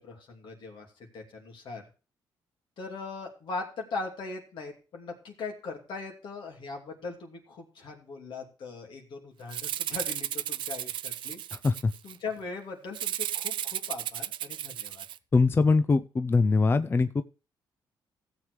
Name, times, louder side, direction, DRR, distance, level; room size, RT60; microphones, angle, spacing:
voice 1, 0.0-1.8 2.8-11.4 12.0-15.0, left 4 dB, 70° left, 1 dB, 2.8 m, -40 dB
Rattle (instrument), 9.5-12.2 12.9-15.2, right 11 dB, 70° right, 0.5 m, -34 dB
voice 2, 15.3-17.2, left 4 dB, 25° left, 10 dB, 0.5 m, -22 dB
16.0 x 7.5 x 3.2 m, 0.34 s
cardioid pair, 80°, 9 cm